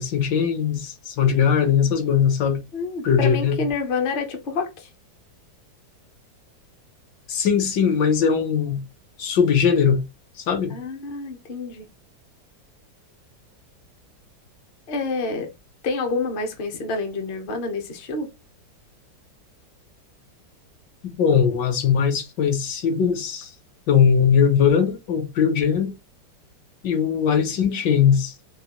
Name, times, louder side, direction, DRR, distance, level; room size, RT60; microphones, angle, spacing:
voice 1, 0.0-2.6 3.0-3.6 7.3-8.8 9.2-10.0 10.5-10.8 21.0-23.5 23.9-25.9 26.8-28.3, left 7 dB, 75° left, 1.4 m, -20 dB
voice 2, 2.7-4.9 10.7-11.9 14.9-15.5 15.8-18.3, left 4 dB, 50° left, 0.6 m, -28 dB
3.9 x 2.2 x 2.8 m
omnidirectional pair, 1.9 m